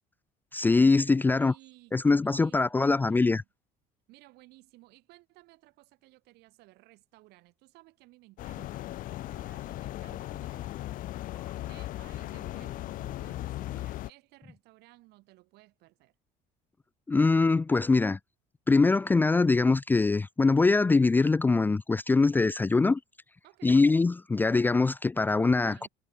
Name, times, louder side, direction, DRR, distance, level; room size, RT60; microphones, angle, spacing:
voice 1, 0.5-1.5 1.9-3.4 17.1-18.2 18.7-23.0 23.6-25.9, left 3 dB, 10° left, 0.6 m, -23 dB
voice 2, 1.3-3.5 4.1-11.4 11.7-16.1 23.4-23.8 25.6-25.9, right 21 dB, 65° right, 7.3 m, -57 dB
sound 1, 8.4-14.1, left 15 dB, 50° left, 2.0 m, -37 dB
cardioid pair, 165°, 18 cm